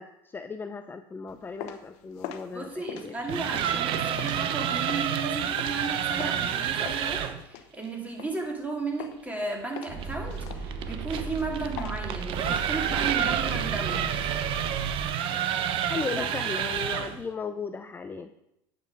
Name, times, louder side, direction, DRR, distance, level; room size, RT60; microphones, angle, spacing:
voice 1, 0.0-3.2 15.9-18.3, left 5 dB, 20° left, 9 dB, 0.5 m, -36 dB
sound 1, 1.3-6.5 6.9-8.7 9.0-9.4 9.8-12.6, left 10 dB, 65° left, 1.0 m, -42 dB
voice 2, 2.5-14.1 16.2-16.3, right 3 dB, 15° right, 0 dB, 2.8 m, -34 dB
sound 2, 3.1-7.4 10.0-17.2, right 9 dB, 50° right, 0.8 m, -29 dB
sound 3, 9.9-15.1, right 5 dB, 75° right, 3.9 m, -36 dB
9.1 x 7.5 x 4.8 m, 0.83 s
supercardioid pair, 95°, 11 cm